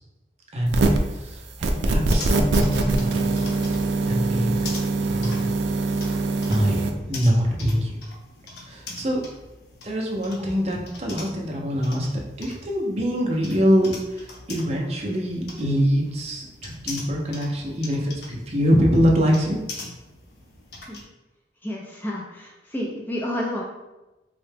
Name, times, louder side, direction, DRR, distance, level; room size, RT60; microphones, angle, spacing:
sound 1, 0.7-1.1 1.6-6.9, right 3 dB, 85° right, 0.4 m, -23 dB
voice 1, 1.1-3.3 4.1-4.6 5.0-5.5 6.5-7.9 8.6-9.2 9.8-19.6, equal, 35° right, -1 dB, 0.6 m, -24 dB
sound 2, 2.1-21.0, left 2 dB, 70° left, 0.7 m, -42 dB
voice 2, 21.6-23.6, left 1 dB, 10° left, -3 dB, 0.4 m, -30 dB
3.8 x 2.2 x 3.3 m, 1.0 s
head